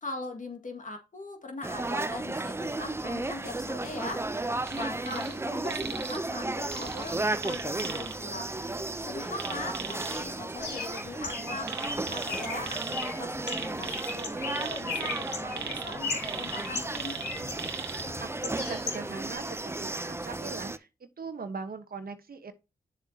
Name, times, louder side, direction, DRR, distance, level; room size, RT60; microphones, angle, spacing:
voice 1, 0.0-4.3 4.7-8.5 9.0-11.7 12.0-17.2, left 2 dB, 50° left, 1.9 m, -41 dB
sound 1, 1.6-20.8, right 2 dB, 15° right, 0.6 m, -34 dB
sound 2, 4.6-5.4 5.7-6.2 6.7-8.1 9.3-10.2 11.6-13.1 13.4-18.1 18.5-18.6, right 7 dB, 80° right, 1.0 m, -39 dB
Bird, 10.6-19.4, left 4 dB, 90° left, 2.7 m, -38 dB
voice 2, 18.2-22.5, right 4 dB, 60° right, 1.1 m, -40 dB
8.2 x 7.1 x 2.8 m
cardioid pair, 50°, 17 cm